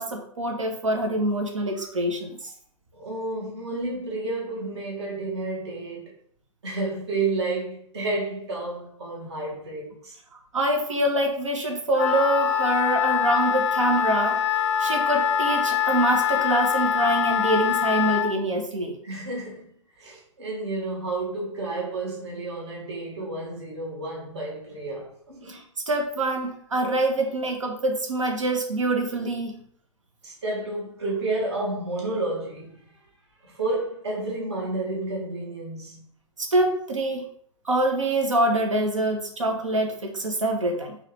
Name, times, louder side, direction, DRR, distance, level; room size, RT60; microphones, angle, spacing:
voice 1, 0.0-2.5 10.5-14.4 14.8-19.0 25.5-29.6 36.4-37.2 37.6-41.0, right 1 dB, 75° right, 0.9 m, -25 dB
voice 2, 2.9-6.1 6.6-10.2 19.0-25.6 30.2-32.8 33.4-36.0, right 2 dB, 55° right, 1.4 m, -31 dB
Wind instrument woodwind instrument, 12.0-18.3, left 8 dB, 60° left, 0.4 m, -24 dB
4.0 x 2.5 x 3.2 m
figure-of-eight pair, 110°, 16 cm